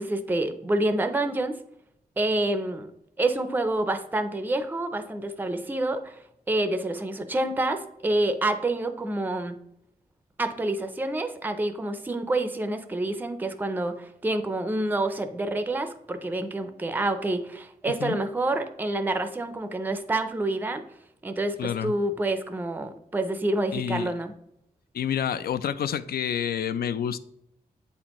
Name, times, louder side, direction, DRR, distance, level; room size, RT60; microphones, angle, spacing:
voice 1, 0.0-1.6 2.2-2.9 3.2-6.2 6.5-9.6 10.4-20.8 21.2-24.3, right 2 dB, 10° right, 8 dB, 0.4 m, -28 dB
voice 2, 21.6-21.9 23.7-24.1 24.9-27.2, left 9 dB, 75° left, 14 dB, 0.4 m, -28 dB
8.1 x 4.2 x 2.9 m, 0.75 s
wide cardioid pair, 145°, 16 cm